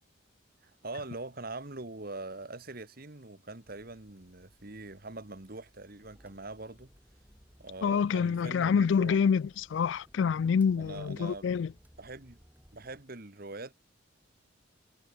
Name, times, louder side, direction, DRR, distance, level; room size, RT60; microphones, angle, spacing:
voice 1, 0.6-6.9 7.6-9.2 10.8-11.5 12.0-12.4 12.7-13.7, right 2 dB, 50° right, 1.8 m, -43 dB
sound 1, 3.6-13.0, equal, 10° right, 5.5 m, -61 dB
voice 2, 7.8-9.4 9.7-11.7, left 6 dB, 65° left, 0.3 m, -26 dB
head